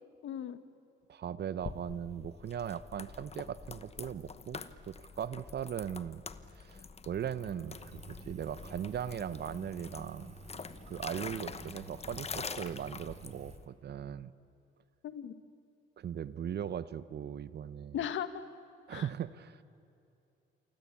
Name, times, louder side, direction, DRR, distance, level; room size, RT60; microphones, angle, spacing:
voice 1, 0.2-0.6 15.0-15.3 17.9-18.4 18.9-19.1, left 9 dB, 75° left, 12 dB, 1.6 m, -37 dB
voice 2, 1.1-6.2 6.6-10.3 10.9-14.3 16.0-18.0 18.9-19.6, right 9 dB, 55° right, 15 dB, 1.0 m, -39 dB
sound 1, 1.6-13.7, left 5 dB, 30° left, 1.1 m, -46 dB
Engine, 7.7-13.6, right 5 dB, 35° right, 2.5 m, -55 dB
28.5 x 24.5 x 8.6 m, 2.7 s
cardioid pair, 90°, 20 cm